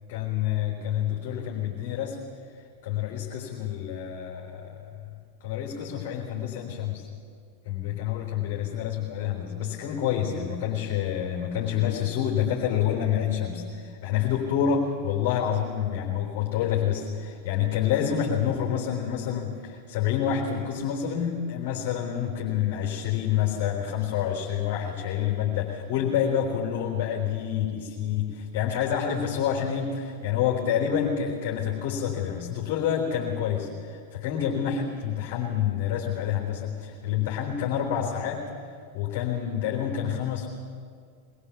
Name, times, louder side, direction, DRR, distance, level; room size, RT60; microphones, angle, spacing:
voice 1, 0.1-2.2 2.8-4.9 5.4-7.1 7.7-38.5 38.9-40.5, left 9 dB, 45° left, -1 dB, 3.7 m, -28 dB
22.0 x 21.0 x 7.2 m, 2.1 s
figure-of-eight pair, 90°, 0 cm